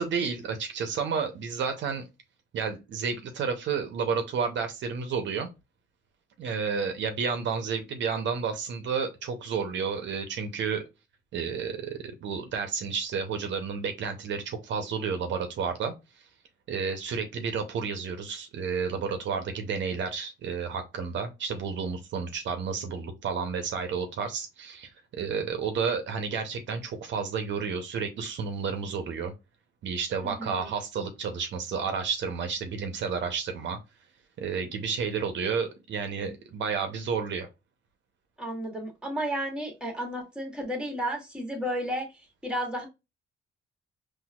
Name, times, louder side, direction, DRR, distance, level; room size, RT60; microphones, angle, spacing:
voice 1, 0.0-2.0 2.5-5.5 6.4-10.8 11.3-15.9 16.7-29.3 29.8-33.8 34.4-37.5, right 6 dB, 65° right, 0.7 m, -31 dB
voice 2, 30.2-30.7 38.4-42.9, equal, 5° right, 1.3 m, -33 dB
4.0 x 2.5 x 2.3 m
cardioid pair, 90°, 20 cm